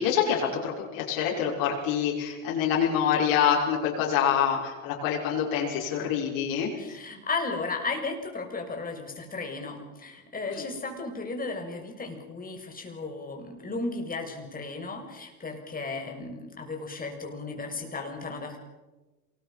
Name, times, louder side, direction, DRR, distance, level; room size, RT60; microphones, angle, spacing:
voice 1, 0.0-6.7 10.5-10.6, left 8 dB, 60° left, -3 dB, 6.4 m, -26 dB
voice 2, 6.8-18.6, left 3 dB, 20° left, 2 dB, 7.0 m, -35 dB
27.5 x 21.0 x 6.1 m, 1.2 s
hypercardioid pair, 85°, 40 cm